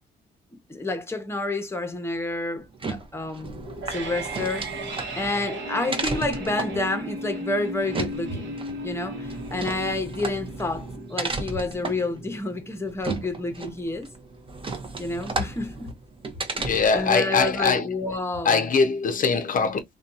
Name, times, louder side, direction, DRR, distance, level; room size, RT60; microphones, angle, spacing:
voice 1, 0.7-4.7 5.2-8.5 8.8-14.1 15.0-15.9 16.5-18.6, left 2 dB, 10° left, 0.8 m, -29 dB
sound 1, 2.6-17.1, right 3 dB, 25° right, 0.7 m, -34 dB
sound 2, 3.5-14.5, right 1 dB, 65° right, 0.9 m, -36 dB
voice 2, 16.6-17.9 18.4-19.8, left 5 dB, 45° left, 0.5 m, -22 dB
2.6 x 2.2 x 2.5 m
cardioid pair, 90°, 20 cm